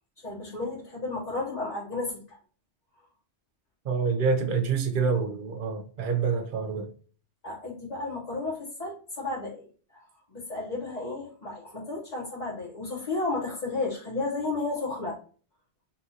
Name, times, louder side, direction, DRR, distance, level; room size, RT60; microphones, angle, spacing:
voice 1, 0.2-2.4 7.4-10.0 10.3-15.2, left 3 dB, 35° left, 1.2 m, -33 dB
voice 2, 3.8-6.9, right 5 dB, 50° right, 0.8 m, -27 dB
5.5 x 2.6 x 2.8 m
omnidirectional pair, 1.2 m